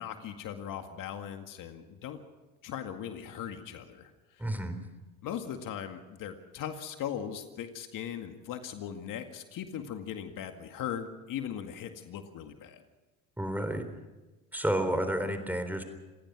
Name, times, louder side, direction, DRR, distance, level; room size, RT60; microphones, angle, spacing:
voice 1, 0.0-2.2 2.6-4.4 5.2-12.8, left 9 dB, 55° left, 6 dB, 2.1 m, -39 dB
voice 2, 4.4-4.8 13.4-13.9 14.5-15.8, right 1 dB, 5° right, 8 dB, 3.7 m, -30 dB
28.0 x 17.0 x 6.2 m, 1.1 s
supercardioid pair, 90°, 40 cm